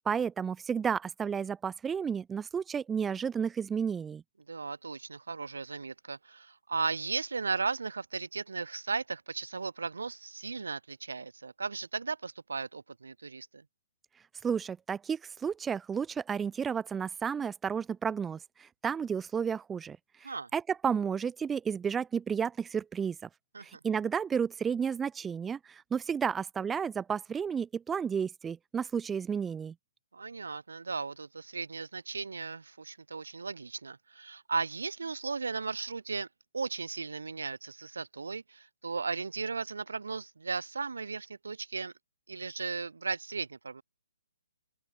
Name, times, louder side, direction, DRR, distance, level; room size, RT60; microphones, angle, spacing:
voice 1, 0.1-4.2 14.4-23.3 23.6-29.7, right 7 dB, 10° right, 0.3 m, -32 dB
voice 2, 4.5-13.6 20.2-20.5 23.5-23.8 30.1-36.3 36.5-41.9 42.3-43.8, right 4 dB, 80° right, 1.0 m, -36 dB
open air
hypercardioid pair, 150°, 0 cm